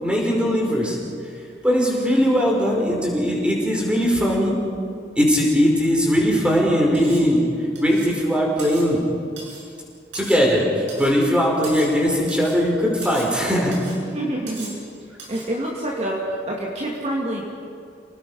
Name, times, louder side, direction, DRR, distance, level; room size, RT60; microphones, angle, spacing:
voice 1, 0.0-1.0 1.6-4.6 5.2-7.4 7.8-9.0 10.1-13.7, equal, 5° right, -2 dB, 5.1 m, -19 dB
Cutlery silverware, 6.9-7.3 7.8-8.2 8.6-8.9 9.4-9.7 10.1-10.5 10.9-11.2 11.6-12.0 12.3-12.6 13.0-13.3 13.7-14.0 14.5-14.8 15.2-15.5, right 3 dB, 90° right, 7.8 m, -38 dB
voice 2, 14.1-14.8 15.3-17.4, right 1 dB, 40° right, -3 dB, 2.7 m, -27 dB
30.0 x 19.0 x 5.7 m, 2.4 s
head